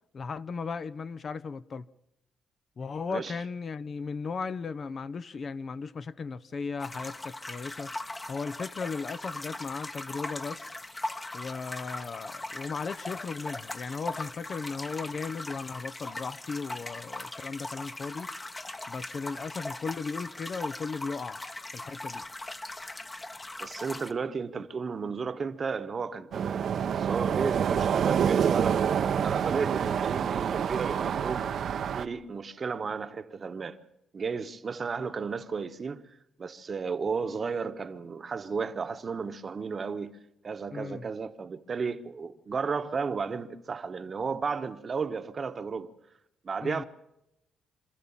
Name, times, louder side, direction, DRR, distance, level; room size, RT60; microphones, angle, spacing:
voice 1, 0.1-1.9 2.8-7.9 8.3-10.7 11.3-18.3 18.9-21.4 21.7-22.2 40.7-41.1 46.6-46.8, left 5 dB, 45° left, 0.7 m, -36 dB
sound 1, 6.8-24.1, left 2 dB, 20° left, 1.1 m, -40 dB
voice 2, 23.6-31.5 31.9-33.8 34.1-36.0 36.4-40.2 40.4-45.9 46.4-46.8, right 5 dB, 40° right, 1.2 m, -33 dB
sound 2, 26.3-32.1, right 8 dB, 60° right, 0.8 m, -27 dB
26.5 x 13.5 x 7.3 m
cardioid pair, 90°, 0 cm